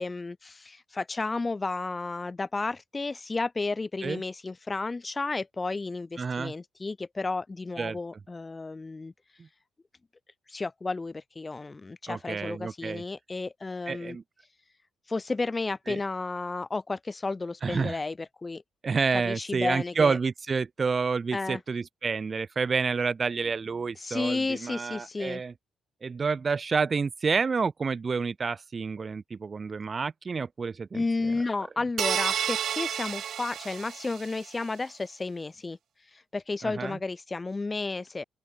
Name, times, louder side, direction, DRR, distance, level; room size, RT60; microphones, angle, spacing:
voice 1, 0.0-9.1 10.5-14.2 15.1-18.6 19.1-20.2 21.3-21.6 24.0-25.4 30.9-35.8 36.3-38.2, left 3 dB, 25° left, 7.3 m, -32 dB
voice 2, 6.2-6.5 7.8-8.0 9.4-9.5 12.1-13.0 13.9-14.2 15.9-16.0 17.6-18.0 18.8-25.5 26.0-31.0 36.6-37.0, right 5 dB, 35° right, 3.6 m, -29 dB
sound 1, 32.0-34.5, right 9 dB, 65° right, 7.9 m, -30 dB
open air
cardioid pair, 90°, 0 cm